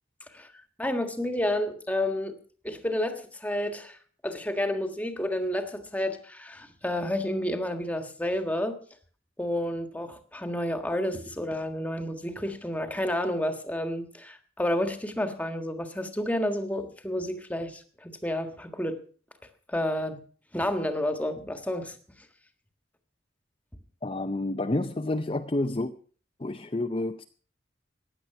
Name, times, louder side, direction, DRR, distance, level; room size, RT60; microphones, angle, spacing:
voice 1, 0.8-2.4 2.6-4.0 4.2-8.8 9.4-19.0 19.7-20.2 20.5-22.0, left 1 dB, 10° left, 1.5 m, -30 dB
voice 2, 24.0-25.9 26.4-27.2, left 2 dB, 30° left, 0.6 m, -29 dB
16.0 x 10.5 x 5.8 m
head